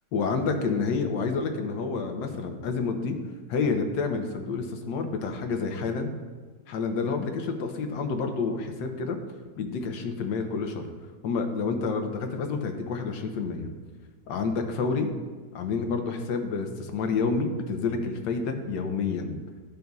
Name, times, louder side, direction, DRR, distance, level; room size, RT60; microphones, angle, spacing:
voice 1, 0.1-3.2 3.5-6.1 6.7-9.2 9.6-10.9 11.2-13.7 14.3-15.1 15.5-19.4, left 4 dB, 80° left, 5 dB, 1.4 m, -29 dB
14.0 x 5.3 x 2.3 m, 1.4 s
omnidirectional pair, 1.9 m